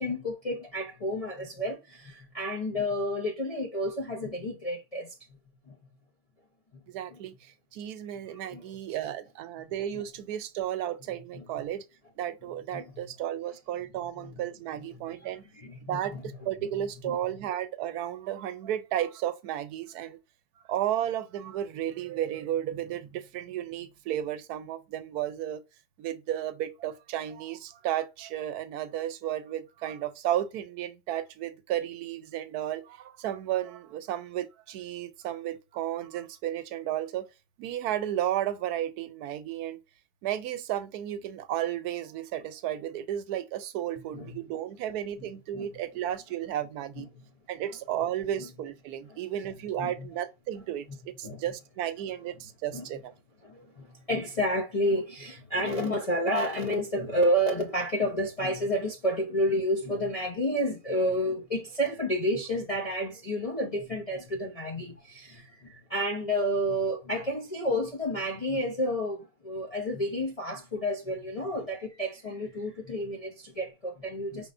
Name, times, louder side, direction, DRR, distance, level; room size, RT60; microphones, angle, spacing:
voice 1, 0.0-5.1 5.7-5.8 7.1-7.2 8.5-8.8 9.9-10.0 11.3-11.4 12.7-13.0 14.2-14.4 15.5-16.2 17.0-17.2 44.1-44.4 45.5-45.7 47.0-47.1 49.1-49.2 49.8-50.1 51.2-51.4 52.7-52.9 53.4-74.5, equal, 45° left, 0.4 m, -30 dB
voice 2, 6.9-11.8 12.2-15.4 15.9-20.2 20.7-25.6 26.0-37.3 37.6-39.8 40.2-47.1 47.5-53.1, right 11 dB, 85° right, 1.1 m, -33 dB
5.2 x 3.6 x 2.5 m
omnidirectional pair, 1.6 m